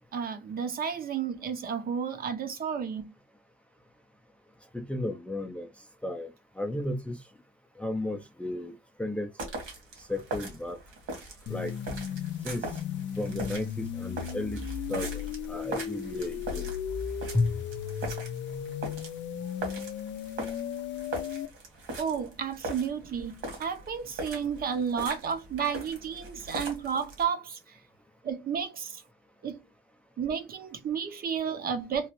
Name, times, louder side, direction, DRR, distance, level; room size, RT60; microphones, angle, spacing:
voice 1, 0.1-3.1 22.0-27.8 28.2-29.0 29.4-29.6 30.2-32.1, right 7 dB, 45° right, 0.7 m, -32 dB
voice 2, 4.7-5.7 6.0-6.3 6.6-7.2 7.8-9.3 10.0-10.8 11.5-11.7 12.4-12.7 13.2-14.6 14.9-16.7 17.3-17.6, left 2 dB, 5° left, 0.4 m, -33 dB
sound 1, 9.4-27.2, right 2 dB, 70° right, 1.6 m, -40 dB
sound 2, 11.5-21.5, left 8 dB, 60° left, 0.5 m, -36 dB
3.1 x 2.4 x 2.9 m
cardioid pair, 110°, 21 cm